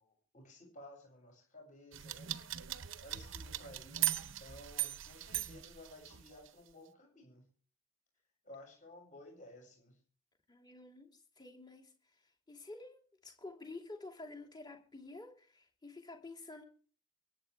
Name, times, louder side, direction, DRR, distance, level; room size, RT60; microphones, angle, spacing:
voice 1, 0.0-2.3 3.0-7.4 8.4-10.0, left 1 dB, 35° left, 7.1 m, -55 dB
sound 1, 1.9-6.5, right 13 dB, 60° right, 0.7 m, -39 dB
voice 2, 10.5-11.9 12.5-16.6, left 2 dB, 20° left, 2.7 m, -50 dB
24.0 x 8.9 x 3.5 m
head